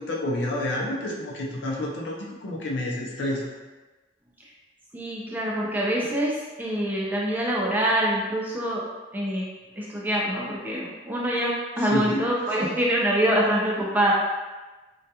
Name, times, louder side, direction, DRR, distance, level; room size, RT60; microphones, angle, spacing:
voice 1, 0.0-3.5 11.9-12.2, left 1 dB, 70° left, -2 dB, 0.5 m, -29 dB
voice 2, 4.9-8.8 9.1-9.5 9.8-14.1, right 1 dB, 10° right, -5 dB, 0.4 m, -25 dB
2.3 x 2.2 x 2.7 m, 1.2 s
head